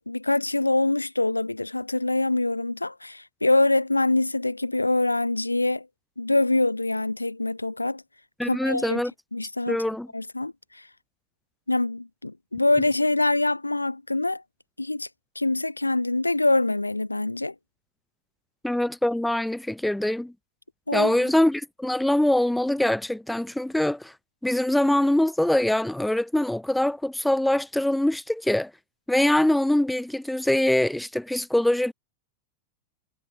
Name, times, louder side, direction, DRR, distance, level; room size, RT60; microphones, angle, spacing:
voice 1, 0.0-5.9 6.2-8.0 8.4-9.0 9.3-9.8 10.1-10.9 11.7-14.4 14.8-15.1 15.4-17.5 20.9-21.1, left 2 dB, 85° left, 0.8 m, -24 dB
voice 2, 8.4-9.1 9.7-10.1 18.6-20.3 20.9-24.1 24.4-28.7 29.1-31.9, left 1 dB, 5° left, 0.4 m, -23 dB
figure-of-eight pair, 90°, 0 cm